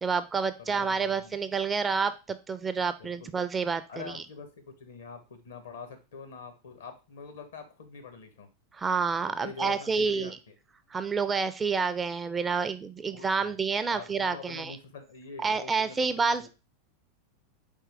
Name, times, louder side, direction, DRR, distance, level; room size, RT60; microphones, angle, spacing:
voice 1, 0.0-4.2 8.7-10.4 10.9-14.8 15.4-16.5, right 5 dB, 20° right, 12 dB, 0.4 m, -29 dB
voice 2, 0.6-1.3 3.0-3.4 3.9-8.5 9.4-10.5 13.1-13.5 13.9-16.5, left 5 dB, 70° left, 8 dB, 0.9 m, -45 dB
4.4 x 3.6 x 3.3 m, 0.30 s
figure-of-eight pair, 85°, 0 cm